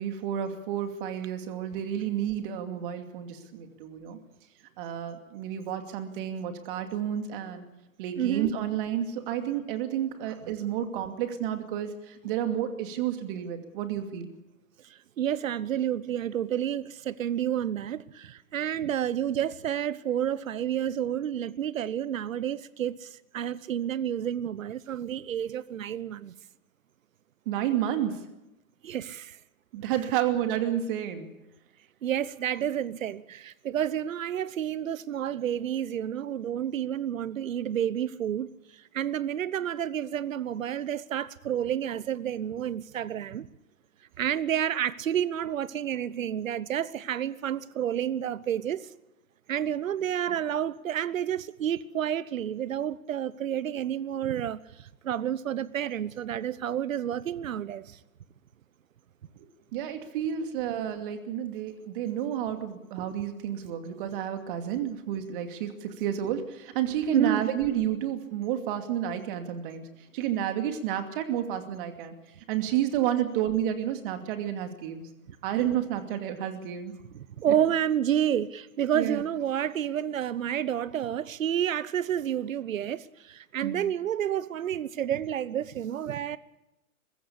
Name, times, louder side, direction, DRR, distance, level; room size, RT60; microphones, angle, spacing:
voice 1, 0.0-4.2 4.8-7.6 8.0-14.3 27.5-28.2 29.7-31.3 59.7-69.9 70.1-72.1 72.5-75.1 75.4-76.9 78.9-79.2 83.6-83.8, right 10 dB, 40° right, 2.6 m, -30 dB
voice 2, 8.2-8.5 14.9-26.3 28.8-29.4 32.0-38.5 38.9-43.5 44.2-48.9 49.5-54.6 55.0-58.0 67.1-67.4 77.1-86.4, right 10 dB, 70° right, 1.0 m, -30 dB
22.0 x 15.5 x 8.5 m
hypercardioid pair, 140°, 41 cm